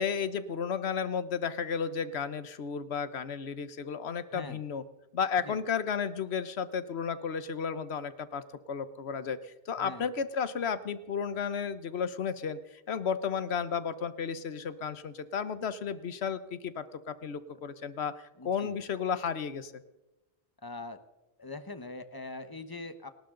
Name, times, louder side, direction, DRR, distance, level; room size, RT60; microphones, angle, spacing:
voice 1, 0.0-4.8 5.1-19.8, left 6 dB, 80° left, 14 dB, 1.2 m, -33 dB
voice 2, 18.4-18.7 20.6-21.0 21.4-23.1, left 2 dB, 20° left, 10 dB, 1.1 m, -42 dB
29.5 x 12.5 x 3.8 m, 1.0 s
omnidirectional pair, 1.1 m